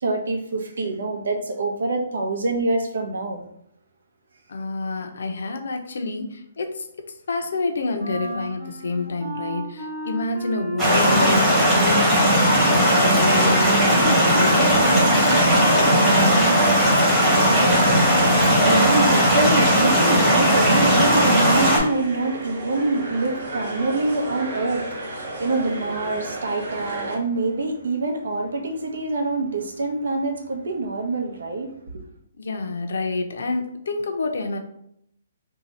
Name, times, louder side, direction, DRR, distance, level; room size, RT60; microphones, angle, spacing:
voice 1, 0.0-3.4 18.2-32.0, right 2 dB, 80° right, 0.7 m, -25 dB
voice 2, 4.5-6.8 7.3-16.3 32.4-34.6, left 3 dB, 70° left, 0.6 m, -28 dB
Wind instrument woodwind instrument, 8.0-17.0, right 1 dB, 30° right, 1.1 m, -34 dB
sound 1, 10.8-21.8, equal, 10° right, 1.0 m, -17 dB
sound 2, 21.0-27.2, right 2 dB, 50° right, 0.9 m, -34 dB
2.8 x 2.3 x 4.1 m
hypercardioid pair, 170°, 0 cm